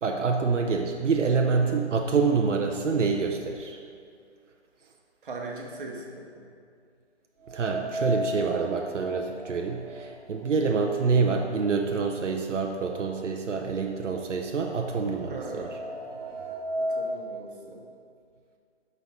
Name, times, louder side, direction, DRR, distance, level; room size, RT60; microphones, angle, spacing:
voice 1, 0.0-3.8 7.5-15.7, right 5 dB, 85° right, 2 dB, 0.7 m, -26 dB
voice 2, 5.2-6.4 15.3-15.7 16.8-17.8, right 2 dB, 45° right, 0 dB, 1.1 m, -39 dB
sound 1, 7.4-11.5 11.8-11.9 12.9-13.0 13.4-17.2, equal, 10° right, 1.4 m, -35 dB
6.3 x 5.4 x 4.1 m, 2.3 s
hypercardioid pair, 160°, 36 cm